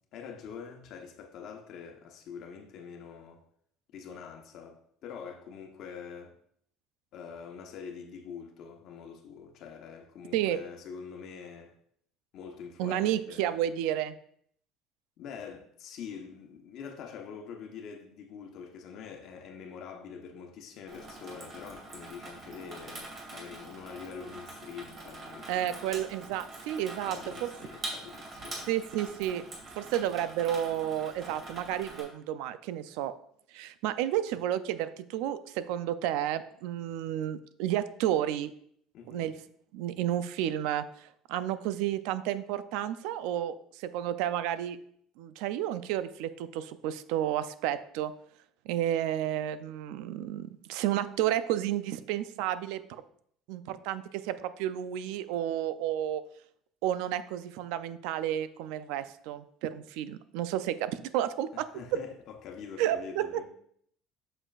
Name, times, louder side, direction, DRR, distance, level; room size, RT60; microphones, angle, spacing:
voice 1, 0.1-3.4 3.9-6.4 7.1-11.7 12.3-13.6 15.2-26.1 26.9-28.7 38.9-39.3 61.5-63.5, left 6 dB, 55° left, 1.0 m, -45 dB
voice 2, 12.8-14.2 25.5-27.5 28.7-29.4 29.8-33.1 33.5-38.5 39.1-39.3 39.7-44.8 45.2-48.1 48.7-53.0 53.5-56.2 56.8-61.6 62.8-63.4, right 11 dB, 80° right, 0.4 m, -31 dB
Water tap faucet / Sink (filling or washing), 20.9-32.0, right 2 dB, 35° right, 2.1 m, -44 dB
7.6 x 6.4 x 2.4 m
cardioid pair, 140°, 0 cm